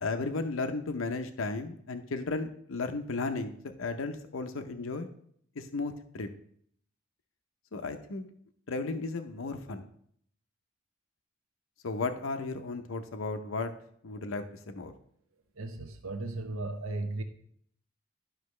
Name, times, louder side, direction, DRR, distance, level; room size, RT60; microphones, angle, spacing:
voice 1, 0.0-5.1 5.6-6.3 7.7-8.3 8.7-9.9 11.8-13.7 14.0-14.9, left 3 dB, 80° left, 7 dB, 0.7 m, -34 dB
voice 2, 15.6-17.2, right 2 dB, 85° right, 6 dB, 0.8 m, -36 dB
11.5 x 5.9 x 3.2 m, 0.65 s
head